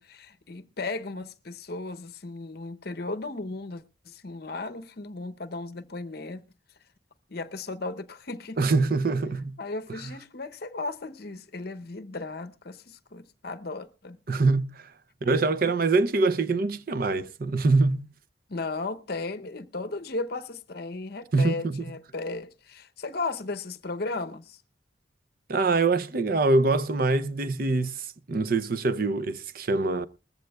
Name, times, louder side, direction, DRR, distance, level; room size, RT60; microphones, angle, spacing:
voice 1, 0.0-6.4 7.3-8.6 9.6-14.2 18.5-24.6, left 3 dB, 55° left, 0.8 m, -35 dB
voice 2, 8.6-9.6 14.3-14.9 15.2-18.1 21.3-21.8 25.5-30.1, right 3 dB, 50° right, 0.6 m, -24 dB
20.0 x 14.5 x 2.3 m
head